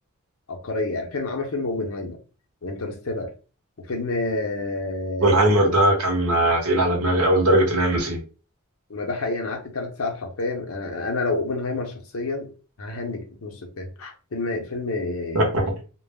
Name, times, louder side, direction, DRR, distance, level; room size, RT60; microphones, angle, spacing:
voice 1, 0.5-2.2 2.6-3.3 3.8-5.4 8.9-12.5 12.8-15.5, left 2 dB, 70° left, 0.6 m, -29 dB
voice 2, 5.2-8.2 15.3-15.6, right 1 dB, 70° right, 0.9 m, -19 dB
2.2 x 2.0 x 3.4 m
head